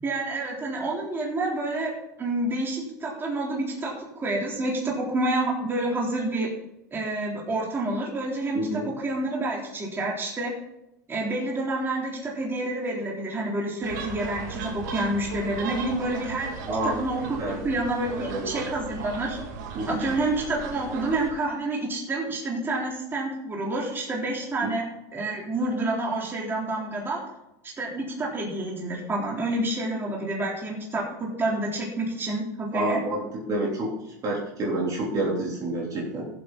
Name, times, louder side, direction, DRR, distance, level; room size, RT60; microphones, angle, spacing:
voice 1, 0.0-1.9 2.2-6.5 6.9-10.5 11.1-16.5 16.8-19.4 19.9-24.8 25.1-27.2 27.8-33.0, right 2 dB, 20° right, -3 dB, 3.6 m, -28 dB
voice 2, 8.5-8.9 16.7-17.0 17.4-17.6 18.2-18.5 19.7-20.1 24.6-24.7 32.7-33.2 33.5-36.3, right 1 dB, 40° right, -3 dB, 3.4 m, -28 dB
sound 1, 13.8-21.3, right 5 dB, 75° right, 2.2 m, -37 dB
15.0 x 8.0 x 4.1 m, 0.89 s
supercardioid pair, 115°, 10 cm